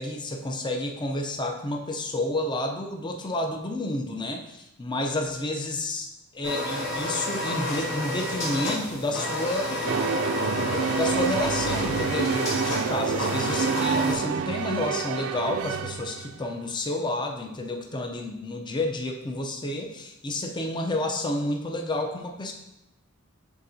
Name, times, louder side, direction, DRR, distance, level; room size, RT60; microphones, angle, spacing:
voice 1, 0.0-6.1 6.3-9.8 10.5-22.5, left 1 dB, 20° left, 3 dB, 0.6 m, -30 dB
sound 1, 6.4-14.2, left 1 dB, 55° left, 2.4 m, -30 dB
sound 2, 9.8-16.4, right 6 dB, 75° right, 0.4 m, -28 dB
11.0 x 3.7 x 2.7 m, 0.91 s
head